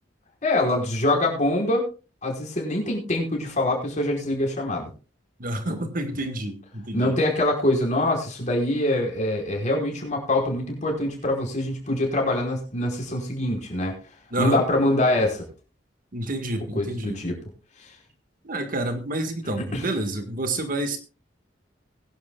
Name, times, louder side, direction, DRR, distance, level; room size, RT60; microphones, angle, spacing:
voice 1, 0.4-1.9 2.2-4.9 6.9-13.9 14.4-15.4 16.7-17.4 19.6-19.9, left 1 dB, 40° left, 0 dB, 5.1 m, -24 dB
voice 2, 5.4-7.1 14.3-14.6 16.1-17.2 18.4-21.0, right 1 dB, 50° right, 6 dB, 1.8 m, -28 dB
21.0 x 11.5 x 2.4 m, 0.34 s
head